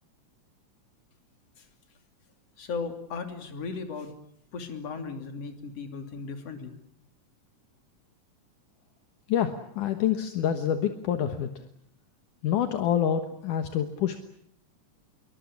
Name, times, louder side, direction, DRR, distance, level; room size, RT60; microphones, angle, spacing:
voice 1, 2.6-4.1 4.5-6.7, left 4 dB, 50° left, 6 dB, 3.8 m, -36 dB
voice 2, 9.3-11.5 12.4-14.2, left 9 dB, 70° left, 7 dB, 2.8 m, -27 dB
26.5 x 23.5 x 8.5 m, 0.67 s
omnidirectional pair, 3.8 m